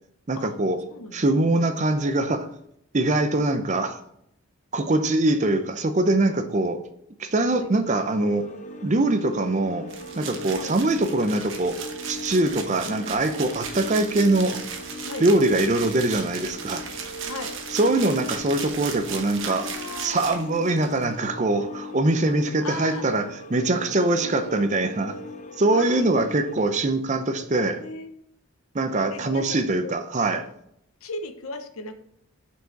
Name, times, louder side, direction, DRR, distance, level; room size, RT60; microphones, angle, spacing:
voice 1, 0.3-0.8 1.1-2.5 2.9-4.0 4.7-6.8 7.2-8.5 8.8-9.9 10.2-11.8 12.1-14.6 15.2-16.8 17.7-19.7 20.0-25.2 25.6-27.8 28.7-30.4, right 2 dB, 30° right, 0.5 m, -23 dB
voice 2, 0.9-1.2 7.5-7.7 10.5-10.8 15.0-15.5 17.2-17.5 19.4-20.4 22.6-23.0 24.0-24.6 25.7-26.1 27.8-28.1 29.1-29.9 31.0-32.0, left 2 dB, 75° left, 0.8 m, -37 dB
sound 1, 7.8-26.6, left 2 dB, 35° left, 0.5 m, -39 dB
sound 2, 9.9-21.1, right 6 dB, 55° right, 1.0 m, -37 dB
6.7 x 4.7 x 4.6 m
head